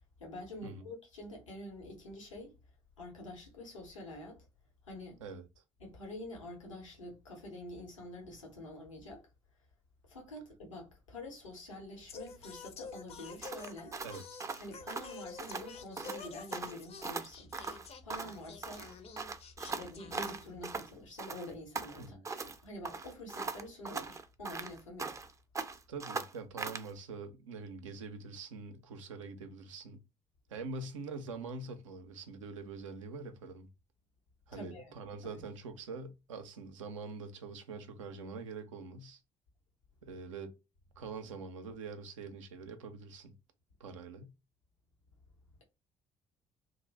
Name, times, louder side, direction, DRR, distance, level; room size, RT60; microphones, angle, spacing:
voice 1, 0.2-2.5 3.0-4.5 4.8-5.2 5.8-9.3 10.1-14.0 14.6-17.5 18.0-18.9 19.6-25.3 34.5-35.0 35.2-35.4, left 1 dB, 80° left, 0.8 m, -47 dB
Singing, 12.1-20.8, left 5 dB, 40° left, 0.5 m, -49 dB
sound 1, 13.4-15.7 16.0-16.2 16.5-18.4 18.6-20.9 21.2-22.6 22.9-25.3 25.6-26.9, right 4 dB, 20° right, 0.4 m, -40 dB
voice 2, 25.9-30.0 30.5-33.7 34.5-39.2 40.0-40.5 41.0-43.3 43.8-44.3, right 4 dB, 75° right, 0.4 m, -44 dB
2.4 x 2.0 x 3.2 m
figure-of-eight pair, 45°, 16 cm